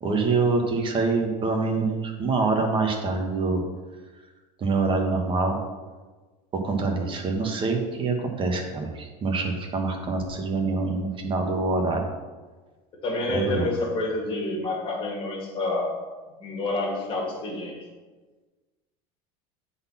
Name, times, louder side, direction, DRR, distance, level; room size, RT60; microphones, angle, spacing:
voice 1, 0.0-3.6 4.6-5.6 6.6-12.1 13.3-13.7, right 3 dB, 30° right, 3 dB, 1.3 m, -25 dB
voice 2, 13.0-16.0 16.4-17.8, left 2 dB, 30° left, -2 dB, 2.2 m, -28 dB
7.7 x 4.2 x 5.7 m, 1.3 s
supercardioid pair, 140°, 19 cm